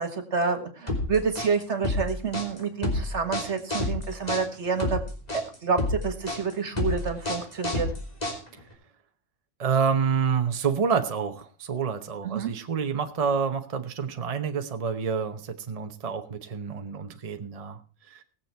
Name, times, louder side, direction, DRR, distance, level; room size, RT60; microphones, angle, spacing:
voice 1, 0.0-5.0 5.3-7.9 12.2-12.5, right 5 dB, 65° right, 8 dB, 1.9 m, -28 dB
sound 1, 0.9-8.7, left 2 dB, 35° left, 3.3 m, -29 dB
voice 2, 9.6-17.8 18.1-18.2, right 6 dB, 35° right, 7 dB, 0.9 m, -28 dB
19.5 x 7.4 x 4.5 m, 0.38 s
omnidirectional pair, 1.3 m